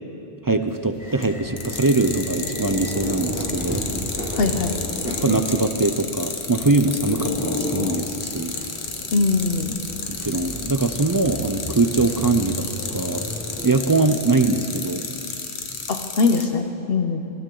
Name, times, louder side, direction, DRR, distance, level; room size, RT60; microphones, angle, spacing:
voice 1, 0.4-3.8 5.2-8.5 10.1-12.7 12.9-13.3 13.6-15.0, right 3 dB, 30° right, 7 dB, 0.4 m, -22 dB
sound 1, 0.8-1.2 1.6-16.4, left 5 dB, 85° left, 1.4 m, -31 dB
sound 2, 1.0-13.8, equal, 10° right, 1.8 m, -35 dB
sound 3, 2.0-3.8 4.3-5.4 6.3-8.2, left 2 dB, 15° left, 0.9 m, -33 dB
voice 2, 4.4-4.7 9.1-9.8 15.9-17.2, left 4 dB, 65° left, 5 dB, 1.0 m, -21 dB
21.5 x 13.0 x 3.8 m, 3.0 s
omnidirectional pair, 1.1 m